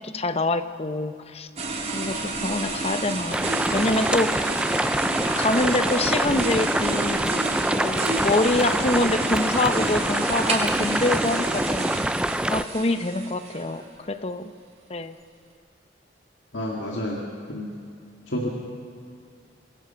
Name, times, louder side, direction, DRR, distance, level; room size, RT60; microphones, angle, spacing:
voice 1, 0.0-1.5 1.9-4.6 5.4-7.3 7.7-11.9 12.5-13.8 14.1-14.5 14.9-15.1, left 2 dB, 35° left, 10 dB, 0.9 m, -25 dB
sound 1, 1.6-13.9, right 3 dB, 35° right, 3.7 m, -30 dB
sound 2, 3.3-12.6, right 1 dB, 5° right, 0.5 m, -25 dB
voice 2, 16.5-17.2 17.5-17.8 18.3-18.5, left 1 dB, 75° left, -2 dB, 2.3 m, -29 dB
27.0 x 21.0 x 5.8 m, 2.4 s
head